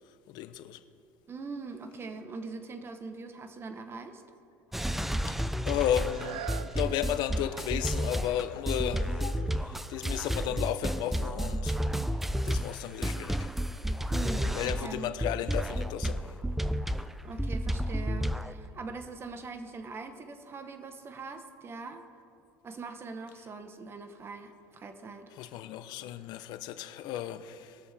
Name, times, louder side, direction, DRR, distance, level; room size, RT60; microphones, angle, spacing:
voice 1, 0.3-0.8 5.2-11.8 12.2-13.5 14.0-14.1 14.5-16.4 25.4-27.8, left 11 dB, 60° left, 0.7 m, -34 dB
voice 2, 1.3-4.2 14.1-15.1 17.2-22.0 22.6-25.3, right 4 dB, 30° right, 1.1 m, -42 dB
sound 1, 4.7-15.0 15.2-18.5, equal, 5° right, 0.3 m, -31 dB
sound 2, 6.0-11.6 12.2-12.3, right 11 dB, 75° right, 0.5 m, -48 dB
20.0 x 7.0 x 3.4 m
supercardioid pair, 110°, 8 cm